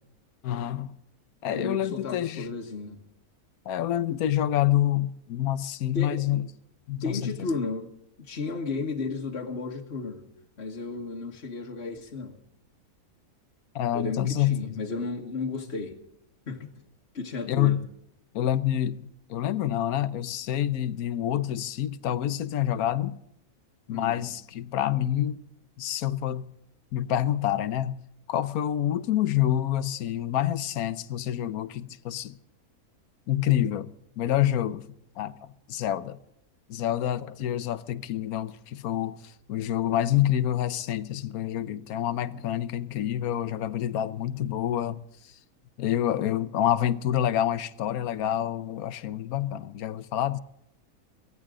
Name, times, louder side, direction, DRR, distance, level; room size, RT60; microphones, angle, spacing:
voice 1, 0.4-0.9 1.4-2.5 3.6-6.5 6.9-7.5 13.7-14.8 17.5-17.9 18.3-23.2 23.9-25.4 25.8-26.5 26.9-28.0 28.3-32.3 33.3-34.8 35.2-35.4 35.7-36.2 36.7-45.3 45.8-50.4, left 11 dB, 75° left, 1.3 m, -27 dB
voice 2, 1.5-3.0 5.9-6.2 7.0-7.9 8.2-10.2 10.6-12.3 13.9-16.0 16.5-16.7 17.1-17.8 23.9-24.2, left 3 dB, 45° left, 1.8 m, -33 dB
24.0 x 16.0 x 3.8 m
omnidirectional pair, 1.6 m